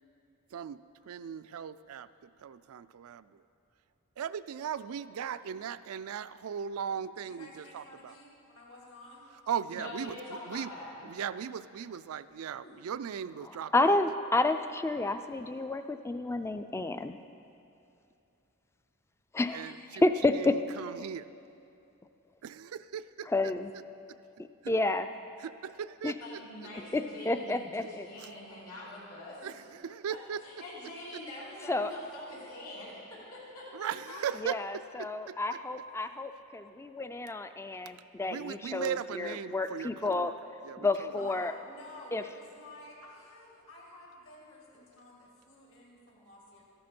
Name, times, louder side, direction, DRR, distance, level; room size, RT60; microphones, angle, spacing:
voice 1, 1.1-3.4 4.2-8.1 9.5-10.7 11.0-14.0 19.5-20.0 20.3-21.3 22.4-23.3 24.6-24.7 25.4-26.7 28.2-28.3 29.4-30.4 33.7-35.6 38.3-40.3 40.6-41.1, right 8 dB, 75° right, 14 dB, 0.3 m, -38 dB
voice 2, 7.2-9.3 34.1-34.3 41.2-46.6, left 2 dB, 65° left, -3 dB, 2.3 m, -51 dB
voice 3, 9.7-11.1 12.6-12.7 26.2-29.5 30.1-30.2 30.4-33.9, left 1 dB, 85° left, -9 dB, 3.0 m, -44 dB
voice 4, 13.7-17.2 19.3-19.7 20.0-20.5 23.3-23.7 24.7-25.1 26.0-26.1 26.9-28.1 31.7-31.9 34.4-40.3 40.8-41.5 42.1-42.2, left 2 dB, 10° left, 10 dB, 0.3 m, -30 dB
13.5 x 11.5 x 4.4 m, 2.7 s
head